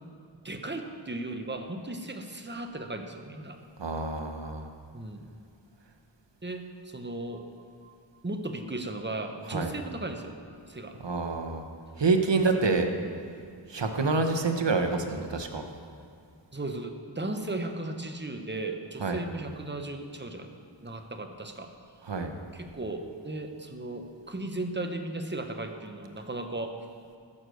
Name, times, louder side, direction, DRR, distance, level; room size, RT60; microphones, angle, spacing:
voice 1, 0.4-3.6 4.9-5.3 6.4-8.0 8.2-11.0 12.5-12.8 16.5-20.5 20.8-21.7 22.5-26.7, right 2 dB, 25° right, 5 dB, 1.1 m, -36 dB
voice 2, 3.8-4.7 9.5-9.7 11.0-11.6 12.0-12.9 13.7-15.6 19.0-19.2 22.0-22.3, right 3 dB, 70° right, 5 dB, 1.1 m, -27 dB
14.5 x 6.7 x 6.4 m, 2.3 s
wide cardioid pair, 45°, 45 cm